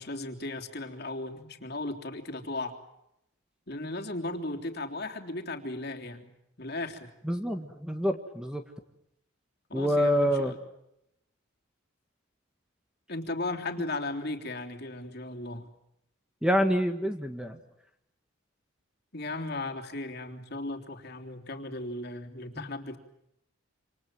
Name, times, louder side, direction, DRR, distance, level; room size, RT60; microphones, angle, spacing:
voice 1, 0.0-2.8 3.7-6.3 6.6-7.1 9.7-10.6 13.1-15.7 19.1-23.0, left 2 dB, 50° left, 3 dB, 3.4 m, -36 dB
voice 2, 7.2-8.6 9.7-10.5 16.4-17.6 22.6-22.7, equal, 5° right, 6 dB, 1.7 m, -27 dB
28.0 x 27.5 x 7.7 m, 0.82 s
head